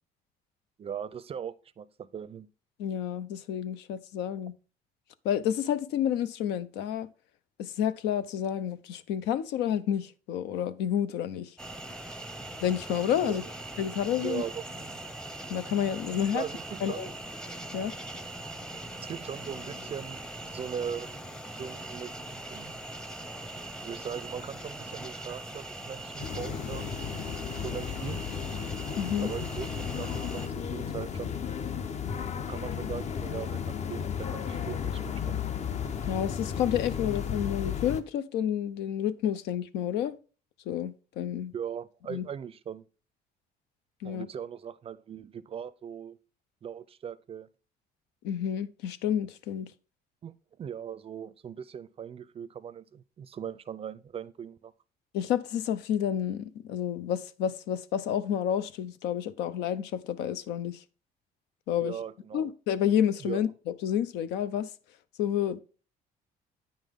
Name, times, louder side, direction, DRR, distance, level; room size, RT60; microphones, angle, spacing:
voice 1, 0.8-2.5 13.2-13.5 14.2-15.0 16.1-17.1 19.1-21.1 21.5-22.8 23.8-27.0 27.4-28.2 29.2-31.4 32.5-35.4 41.5-42.8 44.0-46.2 46.6-47.5 50.2-50.3 50.6-54.7 61.8-62.5 63.2-63.4, right 8 dB, 35° right, 0.5 m, -39 dB
voice 2, 2.8-4.5 5.2-7.1 7.6-11.5 12.6-13.4 13.8-14.4 15.5-16.4 16.8-17.1 17.7-17.9 29.0-29.3 36.1-40.1 40.7-41.5 42.1-42.2 44.0-44.3 48.2-49.7 55.1-60.8 61.7-61.9 62.3-63.5 63.8-64.7 65.2-65.6, left 9 dB, 85° left, 0.6 m, -30 dB
sound 1, 11.6-30.5, right 1 dB, 5° left, 0.7 m, -41 dB
sound 2, 26.2-38.0, left 7 dB, 40° left, 0.7 m, -34 dB
8.9 x 5.5 x 3.6 m
cardioid pair, 110°, 17 cm